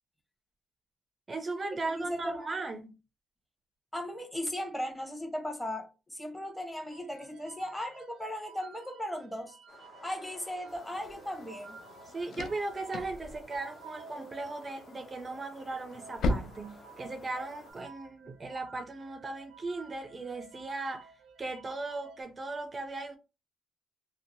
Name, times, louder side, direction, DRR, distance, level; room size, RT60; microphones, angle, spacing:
voice 1, 1.3-2.9 12.1-21.1 21.4-23.2, right 3 dB, 30° right, 0.4 m, -37 dB
voice 2, 1.8-2.4 3.9-9.6 10.0-11.8, left 1 dB, 10° left, 0.9 m, -37 dB
sound 1, 6.9-22.2, right 5 dB, 85° right, 0.5 m, -54 dB
sound 2, 9.7-17.7, left 2 dB, 50° left, 0.8 m, -54 dB
sound 3, 10.7-17.8, left 1 dB, 65° left, 0.3 m, -39 dB
2.8 x 2.1 x 2.6 m
cardioid pair, 90°, 0 cm